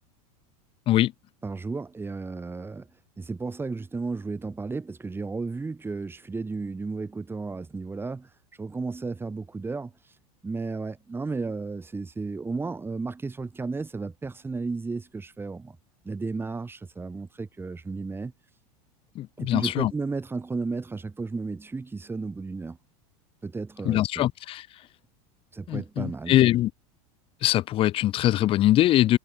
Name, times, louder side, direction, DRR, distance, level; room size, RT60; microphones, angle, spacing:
voice 1, 1.4-2.9 3.2-8.3 8.6-9.9 10.4-15.8 16.0-18.3 19.4-22.8 23.4-24.3 25.5-26.4, right 4 dB, 10° right, 3.4 m, -33 dB
voice 2, 19.2-19.9 23.8-24.7 25.7-26.7 27.4-29.2, left 14 dB, 30° left, 0.4 m, -22 dB
supercardioid pair, 130°, 19 cm